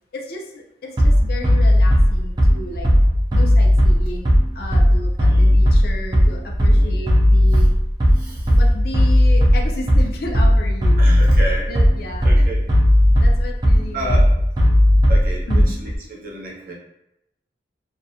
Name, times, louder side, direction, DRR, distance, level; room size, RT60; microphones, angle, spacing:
voice 1, 0.1-2.9 3.3-4.3 4.5-7.7 8.5-11.2 11.7-12.5 13.2-14.2 15.5-15.8, left 2 dB, 55° left, 1 dB, 0.4 m, -33 dB
Bass drum, 1.0-16.0, equal, 25° right, 0.4 m, -15 dB
voice 2, 5.3-5.6 6.7-7.0 7.5-7.7 8.1-8.6 11.0-11.7 12.2-12.7 13.9-14.3 15.1-16.7, right 1 dB, 55° right, -3 dB, 0.7 m, -31 dB
2.5 x 2.0 x 2.6 m, 0.84 s
head